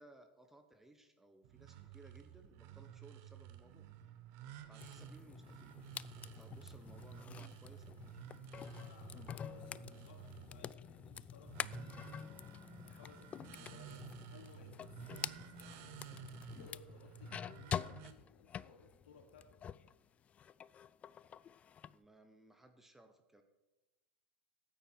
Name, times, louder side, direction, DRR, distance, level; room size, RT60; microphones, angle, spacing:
voice 1, 0.0-3.9 4.7-5.7 6.2-8.2 21.9-23.4, right 2 dB, 5° right, 6 dB, 1.2 m, -61 dB
sound 1, 1.4-18.1, right 11 dB, 50° right, 1.1 m, -53 dB
sound 2, 4.8-19.9 20.3-21.9, left 8 dB, 25° left, 0.3 m, -47 dB
voice 2, 8.6-16.3 16.6-19.6, left 4 dB, 65° left, 3 dB, 2.5 m, -62 dB
14.0 x 9.1 x 4.7 m, 1.0 s
hypercardioid pair, 95°, 6 cm